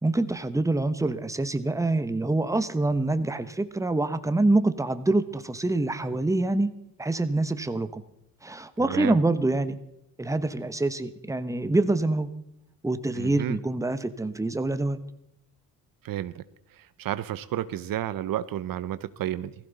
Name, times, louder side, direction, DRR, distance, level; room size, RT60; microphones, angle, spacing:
voice 1, 0.0-6.7 7.0-8.0 8.4-9.8 10.2-12.3 12.8-15.0, right 2 dB, 10° right, 10 dB, 1.1 m, -25 dB
voice 2, 8.8-9.2 13.1-13.6 16.0-16.4 16.7-19.5, right 12 dB, 60° right, 15 dB, 0.7 m, -31 dB
16.5 x 15.0 x 4.1 m, 0.83 s
supercardioid pair, 70°, 38 cm